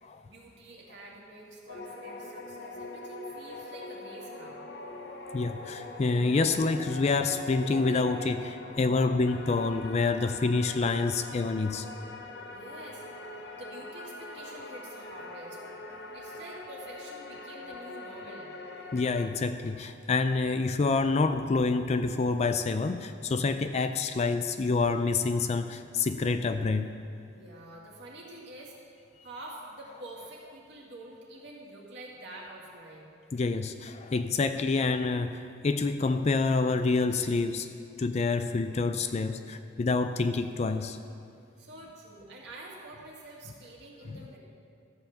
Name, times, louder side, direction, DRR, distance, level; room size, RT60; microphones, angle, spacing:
voice 1, 0.3-4.6 12.5-13.0 13.5-15.6 16.1-18.5 27.3-28.7 29.2-33.1 41.6-44.4, right 1 dB, 60° right, -3 dB, 2.1 m, -47 dB
sound 1, 1.7-19.3, left 2 dB, 55° left, 0.8 m, -43 dB
voice 2, 5.3-11.9 18.9-26.9 33.3-37.7 38.0-41.0 44.1-44.2, left 3 dB, 35° left, 9 dB, 0.4 m, -27 dB
13.0 x 5.7 x 7.1 m, 2.5 s
head